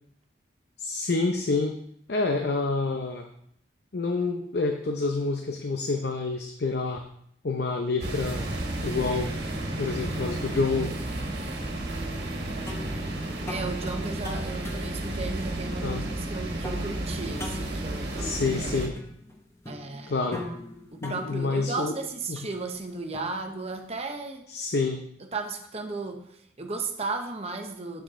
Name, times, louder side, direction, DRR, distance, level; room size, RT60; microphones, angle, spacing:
voice 1, 0.8-1.8 2.1-3.3 3.9-7.0 7.4-8.4 8.8-9.3 9.8-10.9 15.8-16.0 18.2-18.9 20.1-20.4 21.0-22.0 22.3-22.4 24.5-25.0, left 3 dB, 60° left, 4 dB, 0.7 m, -28 dB
sound 1, 8.0-18.9, right 1 dB, 60° right, 1.6 m, -32 dB
sound 2, 12.3-23.9, left 2 dB, 15° left, 1.0 m, -43 dB
voice 2, 13.5-18.8 19.7-20.2 20.9-24.5 25.3-28.0, right 3 dB, 35° right, 4 dB, 0.9 m, -35 dB
7.6 x 7.2 x 3.7 m, 0.70 s
head